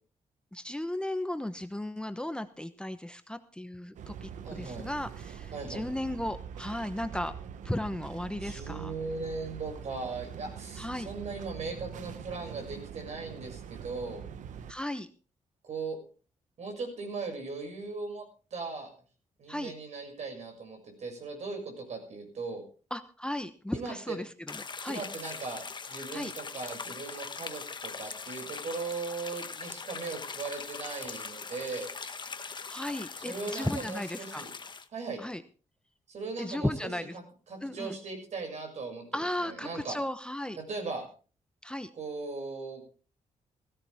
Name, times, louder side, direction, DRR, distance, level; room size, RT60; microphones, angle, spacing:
voice 1, 0.5-7.3 7.6-8.9 10.8-11.1 14.7-15.1 19.5-19.7 22.9-25.0 26.1-26.3 32.7-34.4 35.2-35.4 36.4-37.1 37.6-37.9 39.1-40.6 41.6-41.9, left 1 dB, 5° left, 10 dB, 1.0 m, -35 dB
sound 1, 4.0-14.7, right 7 dB, 85° right, 1.0 m, -44 dB
voice 2, 4.4-4.9 5.5-5.8 8.4-14.2 15.6-16.0 16.6-18.2 18.5-18.9 19.4-22.6 23.7-24.2 24.8-31.9 33.2-34.5 34.9-35.2 36.1-37.2 37.5-40.0 40.6-41.1 42.0-42.8, right 4 dB, 65° right, 3 dB, 6.7 m, -38 dB
sound 2, 24.5-34.9, left 5 dB, 40° left, 1.2 m, -41 dB
16.0 x 15.5 x 3.6 m, 0.38 s
cardioid pair, 80°, 13 cm